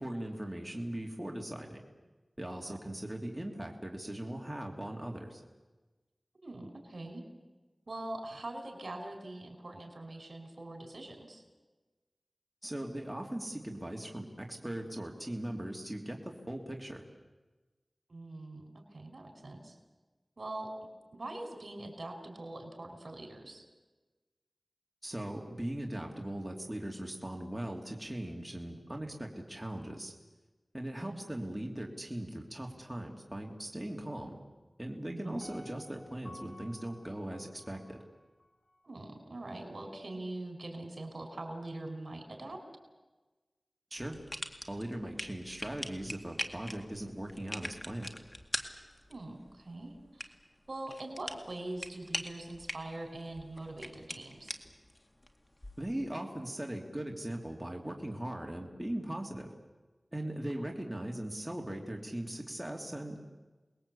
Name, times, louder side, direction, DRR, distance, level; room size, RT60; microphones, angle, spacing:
voice 1, 0.0-1.8 2.4-5.4 12.6-17.0 25.0-30.1 30.7-34.4 34.8-38.0 43.9-44.2 44.7-48.1 55.8-59.5 60.1-63.2, right 1 dB, 10° right, 1 dB, 2.9 m, -39 dB
voice 2, 6.4-7.2 7.9-11.4 18.1-19.7 20.4-20.7 21.1-23.6 31.0-31.2 35.1-35.4 38.8-42.6 49.1-50.3 50.7-54.6 60.6-60.7, right 2 dB, 65° right, 5 dB, 5.0 m, -43 dB
Piano, 35.4-38.5 38.9-39.0, left 1 dB, 75° left, 6.0 m, -54 dB
sound 1, 44.0-55.9, left 1 dB, 35° left, 2.1 m, -44 dB
28.5 x 20.5 x 8.5 m, 1.2 s
wide cardioid pair, 65°, 0 cm